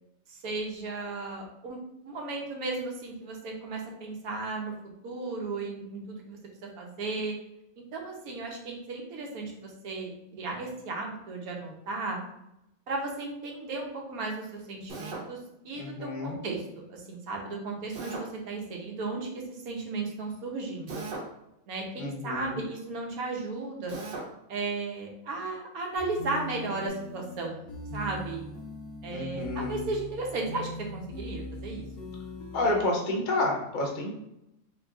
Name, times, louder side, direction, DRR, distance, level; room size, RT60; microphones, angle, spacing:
voice 1, 0.3-1.8 2.0-4.7 5.0-6.4 6.8-7.4 7.9-12.2 12.9-15.4 15.6-16.6 16.9-21.0 21.7-23.9 24.5-27.6 27.9-28.4 29.0-31.8, right 3 dB, 90° right, 1 dB, 1.2 m, -35 dB
Drill, 14.9-15.3 17.9-18.3 20.9-21.3 23.9-24.3, right 3 dB, 55° right, 0.6 m, -37 dB
voice 2, 15.8-16.4 22.0-22.6 29.1-29.9 32.5-34.1, left 2 dB, 45° left, 0 dB, 0.6 m, -30 dB
sound 1, 26.0-32.8, equal, 80° left, 1.2 m, -41 dB
3.8 x 3.2 x 2.4 m, 0.84 s
omnidirectional pair, 1.5 m